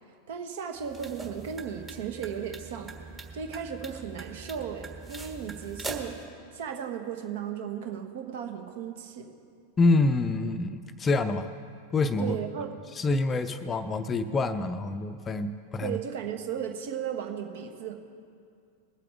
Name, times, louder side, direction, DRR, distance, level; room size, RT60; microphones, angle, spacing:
voice 1, 0.3-2.9 3.3-6.2 6.5-9.3 12.2-12.7 15.8-17.9, right 8 dB, 55° right, 4 dB, 1.3 m, -35 dB
sound 1, 0.8-6.2, right 3 dB, 15° right, 1.4 m, -42 dB
voice 2, 9.8-11.5 11.9-12.3 13.0-16.0, left 3 dB, 20° left, 10 dB, 0.6 m, -26 dB
21.5 x 8.3 x 3.5 m, 2.3 s
figure-of-eight pair, 90°, 0 cm